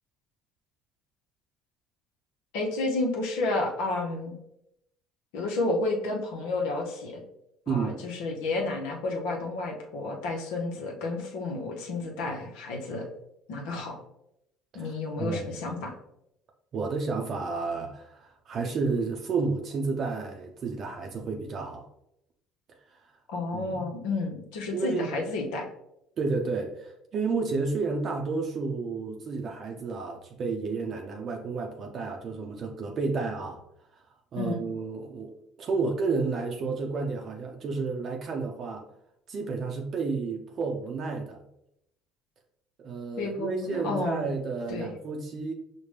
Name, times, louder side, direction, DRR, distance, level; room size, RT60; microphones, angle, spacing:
voice 1, 2.5-4.4 5.3-7.2 7.7-13.1 13.5-14.0 14.7-15.9 23.3-25.7 34.4-34.7 43.2-44.3 44.7-44.9, left 2 dB, 80° left, 0 dB, 0.7 m, -31 dB
voice 2, 7.7-8.0 14.7-14.9 15.2-15.4 16.7-21.9 22.9-23.1 23.5-23.9 24.7-25.1 26.2-33.6 33.9-34.0 34.3-38.8 39.3-41.4 42.8-45.5, right 4 dB, 50° right, 2 dB, 0.5 m, -31 dB
5.0 x 2.1 x 3.2 m, 0.79 s
supercardioid pair, 80°, 0 cm